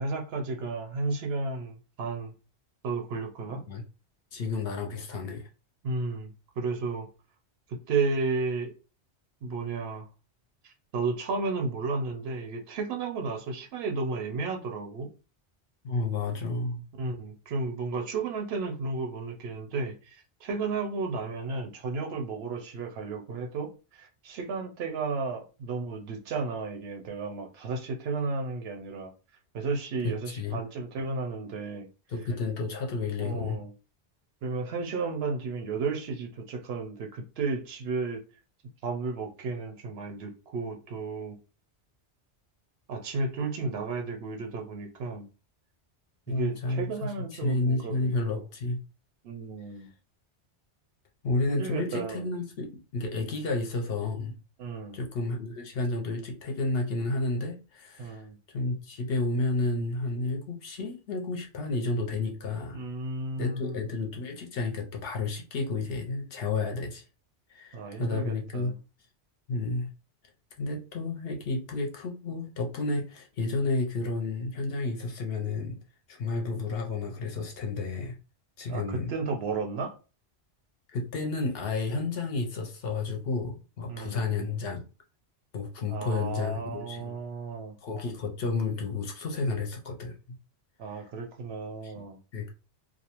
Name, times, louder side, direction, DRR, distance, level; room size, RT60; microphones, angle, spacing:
voice 1, 0.0-2.3 2.8-3.6 5.8-7.1 7.7-8.7 9.4-10.1 10.6-15.1 17.0-29.1 29.5-31.9 33.2-33.7 34.4-38.2 38.8-41.4 42.9-45.3 46.3-48.4 49.2-49.9 51.5-52.3 54.6-55.0 58.0-58.4 62.7-63.8 67.7-68.7 78.7-80.0 83.9-84.2 85.9-87.8 90.8-92.2, right 4 dB, 70° right, 0.8 m, -33 dB
voice 2, 3.5-3.8 4.3-5.5 15.8-16.8 30.0-30.7 32.1-33.6 46.3-48.8 51.2-54.3 54.9-62.9 63.4-67.0 67.5-68.7 69.5-69.9 70.6-75.8 76.1-78.2 78.6-79.1 80.9-84.8 85.5-87.1 87.8-90.4 90.9-91.0 91.8-91.9 92.3-92.5, left 3 dB, 65° left, 0.7 m, -31 dB
2.5 x 2.1 x 2.8 m
omnidirectional pair, 1.2 m